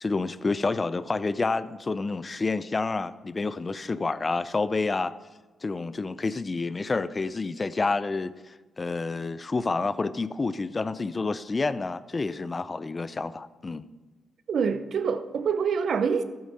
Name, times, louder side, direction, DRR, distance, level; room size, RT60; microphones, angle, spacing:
voice 1, 0.0-5.1 5.6-13.9, left 3 dB, 35° left, 0.5 m, -29 dB
voice 2, 14.5-16.2, right 6 dB, 65° right, 0.7 m, -26 dB
12.5 x 8.8 x 4.1 m
cardioid pair, 75°, 0 cm